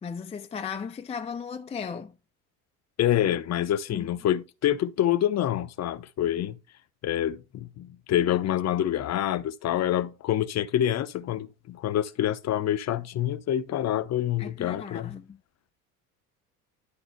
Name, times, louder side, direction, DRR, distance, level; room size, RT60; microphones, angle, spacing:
voice 1, 0.0-2.1 3.9-4.1 14.4-15.4, left 6 dB, 15° left, 0.5 m, -36 dB
voice 2, 3.0-6.6 7.0-15.1, left 11 dB, 35° left, 0.8 m, -27 dB
11.5 x 4.3 x 4.2 m
figure-of-eight pair, 65°, 45 cm